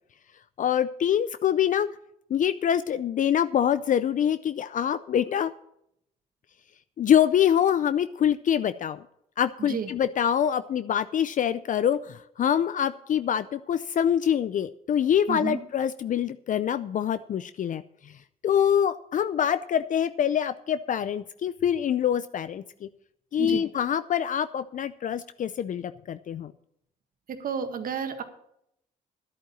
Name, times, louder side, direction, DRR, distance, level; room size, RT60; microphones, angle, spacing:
voice 1, 0.6-1.9 2.3-5.5 7.0-9.0 9.4-18.1 18.4-22.9 23.3-26.5, left 9 dB, 55° left, 13 dB, 0.5 m, -25 dB
voice 2, 15.3-15.6 23.4-23.6 27.3-28.2, right 7 dB, 60° right, 7 dB, 1.8 m, -31 dB
11.0 x 8.7 x 7.1 m, 0.75 s
supercardioid pair, 70°, 16 cm